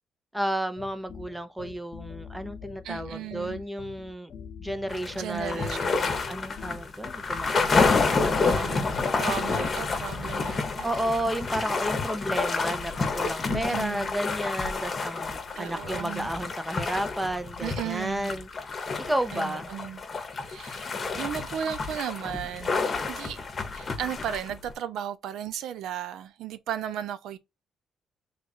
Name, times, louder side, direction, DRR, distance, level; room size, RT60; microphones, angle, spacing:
voice 1, 0.3-4.3 4.6-8.8 10.8-18.5 19.0-19.7, right 1 dB, 10° right, 0.5 m, -32 dB
sound 1, 0.8-7.1, left 6 dB, 65° left, 0.5 m, -44 dB
voice 2, 2.8-3.6 5.1-6.0 8.4-8.9 9.2-10.9 13.5-14.1 15.6-16.3 17.6-18.4 19.3-20.0 20.4-20.9 21.2-23.4 23.7-27.4, right 10 dB, 80° right, 0.5 m, -35 dB
sound 2, 4.9-24.7, left 4 dB, 40° left, 0.9 m, -29 dB
3.3 x 2.4 x 4.1 m
cardioid pair, 90°, 0 cm